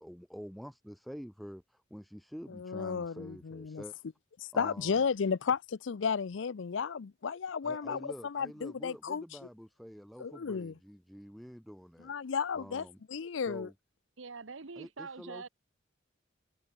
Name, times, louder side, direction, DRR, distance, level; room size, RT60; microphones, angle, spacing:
voice 1, 0.0-4.0 4.5-5.0 7.6-12.1 12.5-13.0 13.5-13.7 14.8-15.5, equal, ahead, 2.2 m, -47 dB
voice 2, 2.5-3.8 4.4-9.2 10.2-10.7 12.0-13.7, left 6 dB, 75° left, 0.5 m, -33 dB
voice 3, 14.2-15.5, right 4 dB, 85° right, 1.1 m, -44 dB
head